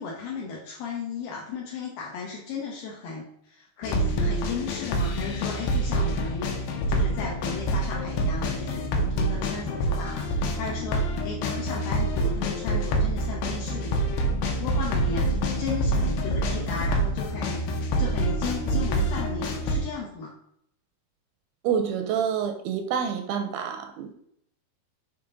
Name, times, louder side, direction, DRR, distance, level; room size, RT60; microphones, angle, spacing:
voice 1, 0.0-6.5 6.9-14.3 14.6-20.3, left 4 dB, 70° left, -3 dB, 2.6 m, -35 dB
sound 1, 3.8-19.8, right 1 dB, 90° left, 3.1 m, -26 dB
voice 2, 21.6-24.2, right 7 dB, 80° right, 7 dB, 2.3 m, -27 dB
6.9 x 3.7 x 5.1 m, 0.69 s
omnidirectional pair, 4.7 m